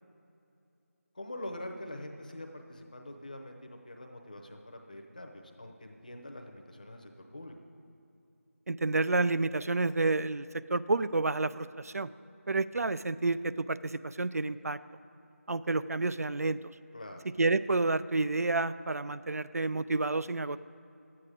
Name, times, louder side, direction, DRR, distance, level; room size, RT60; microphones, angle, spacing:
voice 1, 1.1-7.5 16.9-17.2, left 1 dB, 30° left, 3 dB, 0.7 m, -44 dB
voice 2, 8.7-12.1 12.5-14.8 15.5-16.6 17.4-20.6, right 3 dB, 75° right, 14 dB, 0.3 m, -29 dB
12.0 x 8.5 x 5.0 m, 2.8 s
figure-of-eight pair, 175°, 8 cm